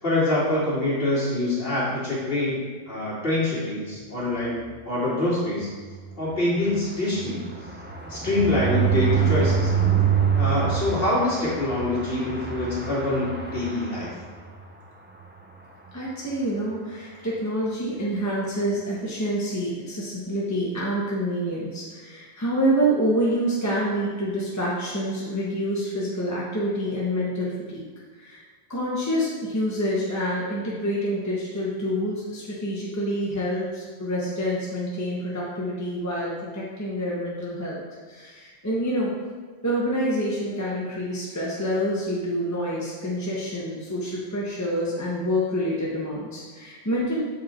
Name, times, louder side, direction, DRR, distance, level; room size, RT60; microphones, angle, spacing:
voice 1, 0.0-2.6 2.9-5.7 6.2-7.4 8.1-9.7 10.3-14.1, left 2 dB, 45° left, -8 dB, 2.7 m, -25 dB
sound 1, 5.8-14.7 15.1-15.3 15.5-15.6 15.9-16.2, right 7 dB, 15° right, 0.4 m, -26 dB
voice 2, 15.9-27.8 28.1-28.4 28.7-37.8 38.1-39.1 39.6-47.2, equal, 15° left, -6 dB, 1.1 m, -27 dB
7.0 x 5.3 x 4.4 m, 1.5 s
omnidirectional pair, 1.4 m